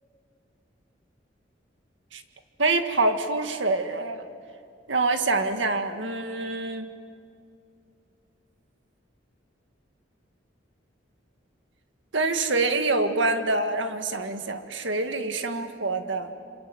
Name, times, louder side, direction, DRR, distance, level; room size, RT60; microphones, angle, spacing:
voice 1, 2.6-4.2 4.9-6.9 12.1-16.3, right 3 dB, 85° right, 7 dB, 1.9 m, -26 dB
27.5 x 26.5 x 7.9 m, 2.4 s
head